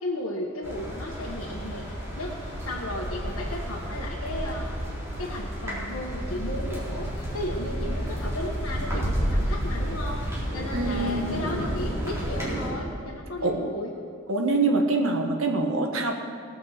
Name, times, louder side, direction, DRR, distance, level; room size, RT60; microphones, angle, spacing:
voice 1, 0.0-4.8 5.2-10.2 10.5-13.9, left 1 dB, 85° left, -3 dB, 1.5 m, -34 dB
sound 1, 0.6-12.7, equal, 15° right, 4.0 m, -31 dB
voice 2, 10.7-11.3 13.4-13.6 14.3-16.1, right 2 dB, 80° right, 2 dB, 1.6 m, -25 dB
19.5 x 6.6 x 6.8 m, 2.3 s
head